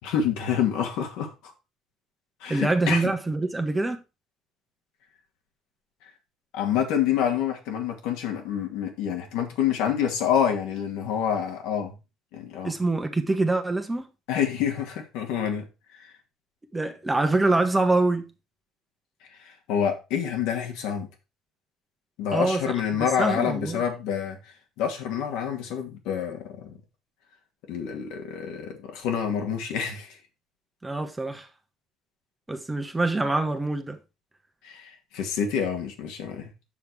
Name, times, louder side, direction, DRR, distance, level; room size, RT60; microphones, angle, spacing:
voice 1, 0.0-1.3 2.4-3.1 6.5-11.9 12.3-12.7 14.3-15.7 16.0-16.1 19.7-21.1 22.2-24.4 24.8-26.8 27.7-30.2 34.6-36.5, left 8 dB, 65° left, 2.4 m, -27 dB
voice 2, 2.5-4.0 12.6-14.1 16.7-18.3 22.3-22.6 22.9-23.8 30.8-31.5 32.5-34.0, right 2 dB, 15° right, 1.5 m, -25 dB
7.3 x 6.7 x 4.8 m
hypercardioid pair, 60°, 0 cm